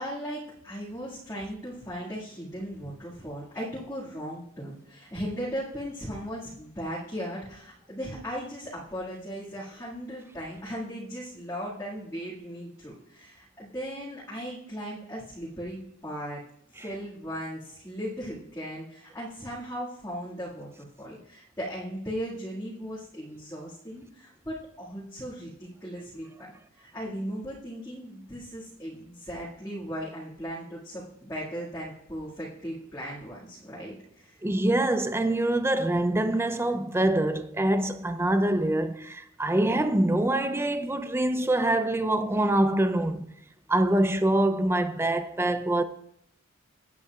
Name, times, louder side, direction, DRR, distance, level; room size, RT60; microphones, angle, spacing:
voice 1, 0.0-16.4 16.7-26.5 26.8-34.4, equal, 15° left, 1.9 m, -37 dB
voice 2, 34.4-43.3 43.7-45.8, right 1 dB, 10° right, 0.5 m, -25 dB
17.0 x 8.4 x 2.4 m
head